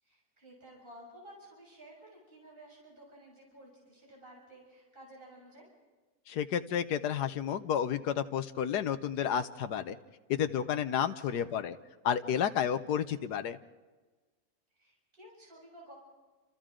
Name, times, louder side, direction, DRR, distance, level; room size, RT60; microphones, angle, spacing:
voice 1, 0.0-5.7 11.2-11.6 14.7-16.0, right 1 dB, 35° right, -3 dB, 7.0 m, -54 dB
voice 2, 6.3-10.0 10.3-11.8 12.0-13.6, left 9 dB, 90° left, 10 dB, 1.5 m, -31 dB
29.0 x 28.0 x 3.8 m, 1.3 s
omnidirectional pair, 1.7 m